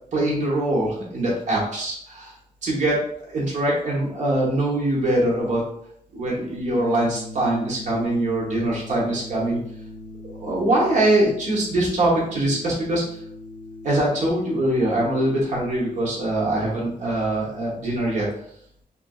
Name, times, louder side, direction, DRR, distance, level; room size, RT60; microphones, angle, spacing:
voice 1, 0.1-2.3 2.6-3.0 3.3-5.6 6.1-9.6 10.4-13.0 13.8-18.3, right 1 dB, 50° right, -4 dB, 0.8 m, -23 dB
sound 1, 6.7-15.4, left 2 dB, 20° right, 1.4 m, -39 dB
2.7 x 2.5 x 2.2 m, 0.66 s
wide cardioid pair, 130°, 16 cm